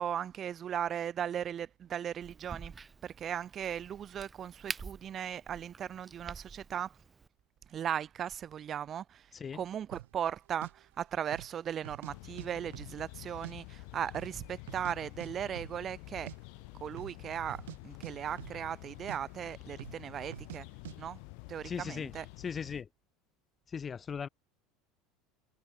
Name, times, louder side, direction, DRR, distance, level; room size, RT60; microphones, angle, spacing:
voice 1, 0.0-2.7 3.0-7.0 7.7-16.3 16.8-20.7 21.0-21.2 21.5-22.3, right 9 dB, 40° right, 0.6 m, -37 dB
Crack, 2.2-7.3, right 5 dB, 20° right, 3.6 m, -47 dB
voice 2, 9.3-9.6 21.6-22.1 22.4-22.9 23.7-24.3, left 6 dB, 30° left, 2.8 m, -38 dB
sound 1, 9.9-10.1 10.6-10.7 11.2-11.6 11.8-12.5 12.7-13.5 13.8-13.9 14.1-15.0 15.2-15.3 15.6-15.8 16.1-16.4 16.9-17.2 17.5-17.8 18.0-18.8 19.1-19.2 19.8-20.0 20.3-20.6 20.9-21.0, right 15 dB, 85° right, 3.7 m, -46 dB
sound 2, 12.1-22.8, left 40 dB or more, 70° left, 5.8 m, -49 dB
supercardioid pair, 100°, 0 cm